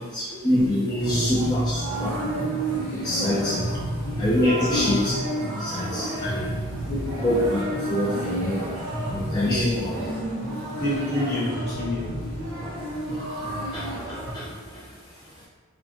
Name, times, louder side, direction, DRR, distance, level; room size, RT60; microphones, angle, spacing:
voice 1, 0.1-5.1 5.6-6.9 7.2-10.0 10.5-10.8 12.9-15.4, left 1 dB, 20° left, -9 dB, 0.4 m, -28 dB
voice 2, 0.7-1.5 3.7-3.8 4.4-4.9 6.9-7.2 9.4-9.8 10.8-12.2, left 1 dB, 50° left, -6 dB, 1.1 m, -27 dB
sound 1, 1.0-14.3, right 1 dB, 55° right, 1.4 m, -30 dB
5.2 x 2.2 x 2.9 m, 1.5 s
head